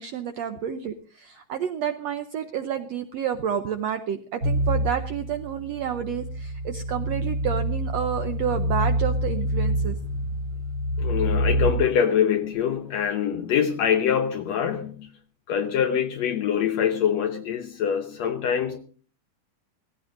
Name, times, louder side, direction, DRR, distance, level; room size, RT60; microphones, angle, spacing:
voice 1, 0.0-10.0, right 8 dB, 75° right, 1.5 m, -30 dB
sound 1, 4.4-11.7, equal, 40° right, 2.3 m, -27 dB
voice 2, 11.0-15.1 15.5-18.8, left 8 dB, 70° left, 1.7 m, -24 dB
16.5 x 16.0 x 3.9 m
omnidirectional pair, 3.9 m